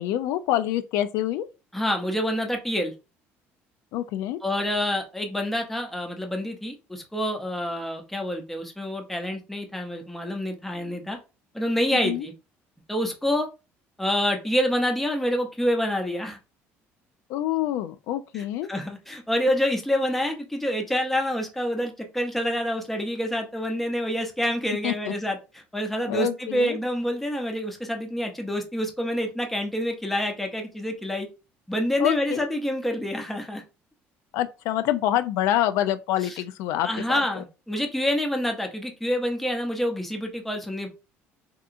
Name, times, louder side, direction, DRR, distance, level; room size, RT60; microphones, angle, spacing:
voice 1, 0.0-1.5 3.9-4.4 11.9-12.3 17.3-18.7 24.8-25.1 26.1-26.8 32.0-32.4 34.3-37.4, left 12 dB, 75° left, 0.3 m, -26 dB
voice 2, 1.7-2.9 4.4-11.2 11.5-12.3 12.9-13.5 14.0-16.4 18.3-18.4 18.7-31.3 31.7-33.6 36.2-36.3 36.8-40.9, equal, 5° left, 0.6 m, -27 dB
3.5 x 2.8 x 2.5 m
cardioid pair, 155°, 5 cm